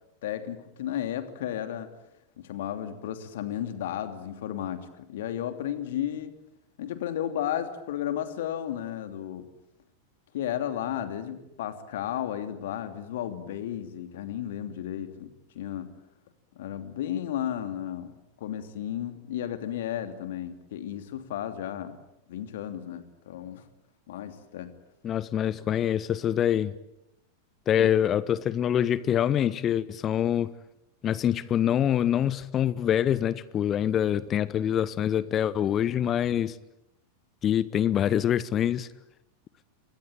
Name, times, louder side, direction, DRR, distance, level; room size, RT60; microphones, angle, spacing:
voice 1, 0.2-1.9 2.4-6.3 6.8-9.5 10.3-15.9 16.5-18.1 18.4-22.0 22.3-23.6 24.1-24.7 27.8-27.9, left 10 dB, 55° left, 9 dB, 2.9 m, -33 dB
voice 2, 25.0-26.7 27.7-30.5 31.0-36.6 37.4-38.9, left 10 dB, 30° left, 19 dB, 0.9 m, -25 dB
28.0 x 22.5 x 9.1 m, 0.87 s
figure-of-eight pair, 90°, 0 cm